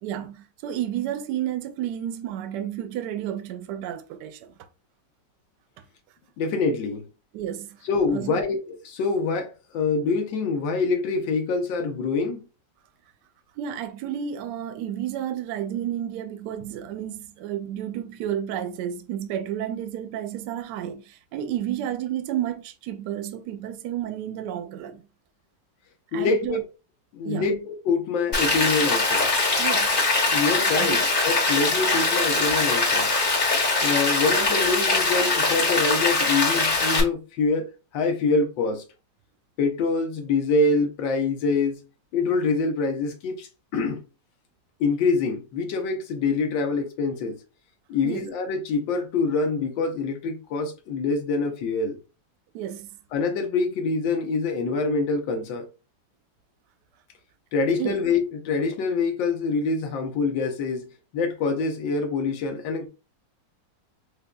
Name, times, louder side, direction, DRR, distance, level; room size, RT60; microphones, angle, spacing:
voice 1, 0.0-4.5 7.3-7.7 8.1-8.4 13.6-25.0 26.1-26.6 27.2-27.6 29.6-30.0 30.7-31.0 48.0-48.3 52.5-52.9 57.8-58.0, right 10 dB, 75° right, 1.1 m, -31 dB
voice 2, 6.4-7.0 7.8-12.4 26.1-26.6 27.1-29.3 30.3-31.0 31.2-33.1 33.8-37.7 37.9-38.8 39.6-41.8 42.1-44.0 44.8-47.4 47.9-52.0 53.1-55.7 57.5-60.9 61.1-62.9, left 4 dB, 85° left, 1.5 m, -25 dB
Rain, 28.3-37.0, left 3 dB, 30° left, 1.5 m, -22 dB
6.1 x 2.5 x 2.2 m
omnidirectional pair, 2.0 m